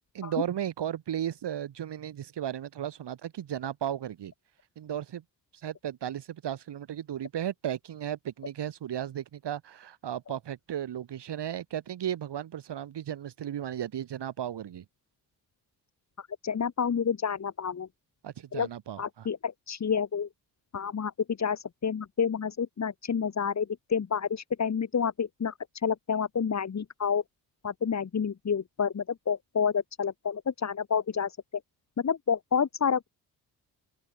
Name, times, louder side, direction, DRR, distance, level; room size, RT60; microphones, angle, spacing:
voice 1, 0.1-4.3 4.8-5.2 5.5-14.8 18.2-19.3, right 10 dB, 55° right, 4.9 m, -35 dB
voice 2, 16.4-17.9 18.5-18.7 19.0-20.3 20.7-25.5 25.8-27.2 27.6-31.4 32.0-33.1, left 6 dB, 35° left, 1.8 m, -29 dB
open air
figure-of-eight pair, 40°, 48 cm